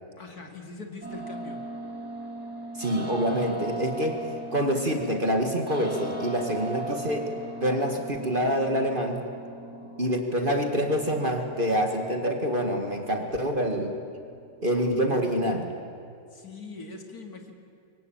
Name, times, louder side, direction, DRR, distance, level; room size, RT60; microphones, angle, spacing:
voice 1, 0.2-1.6 16.3-17.5, left 3 dB, 55° left, 3 dB, 2.9 m, -42 dB
sound 1, 1.0-14.9, right 1 dB, 5° right, 6.1 m, -39 dB
voice 2, 2.7-7.3 7.6-9.2 10.0-14.0 14.6-15.8, equal, 30° right, 4 dB, 2.1 m, -26 dB
26.5 x 23.0 x 8.9 m, 2.5 s
omnidirectional pair, 2.0 m